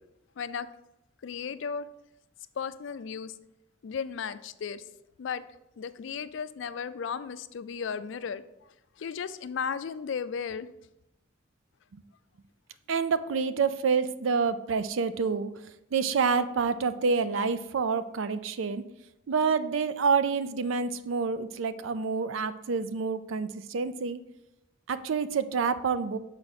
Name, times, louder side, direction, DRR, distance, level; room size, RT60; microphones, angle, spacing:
voice 1, 0.4-0.7 1.2-1.9 2.6-3.3 3.8-4.8 5.2-5.4 5.8-8.4 9.0-10.7, left 6 dB, 75° left, 13 dB, 0.4 m, -35 dB
voice 2, 12.9-15.5 15.9-18.8 19.3-24.2 24.9-26.2, right 5 dB, 90° right, 13 dB, 0.4 m, -28 dB
6.5 x 4.8 x 4.1 m, 0.87 s
head